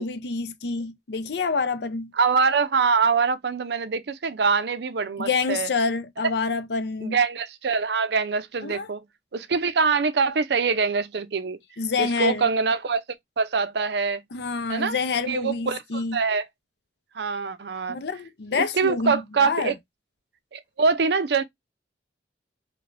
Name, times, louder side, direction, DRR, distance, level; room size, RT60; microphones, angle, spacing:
voice 1, 0.0-2.1 5.2-7.2 8.6-8.9 11.8-12.5 14.3-16.2 17.9-19.7, left 4 dB, 70° left, 0.6 m, -27 dB
voice 2, 2.2-5.7 7.0-9.0 9.3-11.6 12.0-13.0 13.4-14.2 14.7-15.0 15.3-16.4 17.1-18.0 18.5-19.7 20.5-21.4, right 5 dB, 70° right, 0.5 m, -24 dB
3.3 x 3.1 x 2.4 m
head